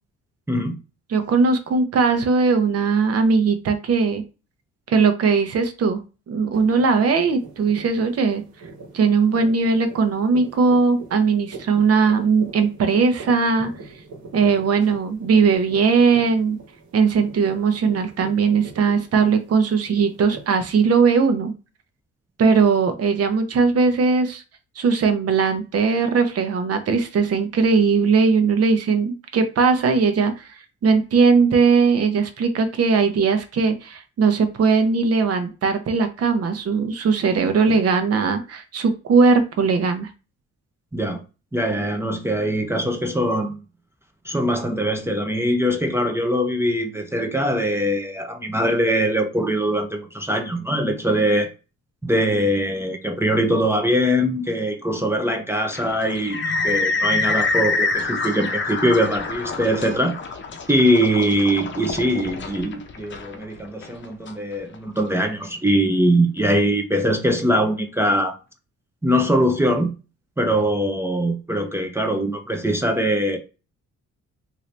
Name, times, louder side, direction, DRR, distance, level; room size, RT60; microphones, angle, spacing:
voice 1, 1.1-4.2 4.9-6.0 6.3-8.4 8.9-13.7 14.3-16.6 16.9-21.5 22.4-24.4 24.8-30.5 30.8-40.1, right 5 dB, 55° right, 0.8 m, -19 dB
sound 1, 6.5-20.5, right 3 dB, 75° right, 1.4 m, -42 dB
voice 2, 41.5-43.6 44.2-51.5 52.0-56.4 56.6-60.2 60.7-68.3 69.0-69.9 70.4-73.4, equal, 10° right, 0.6 m, -22 dB
sound 2, 55.7-65.0, left 3 dB, 40° left, 0.7 m, -26 dB
2.7 x 2.7 x 3.2 m
cardioid pair, 90°, 30 cm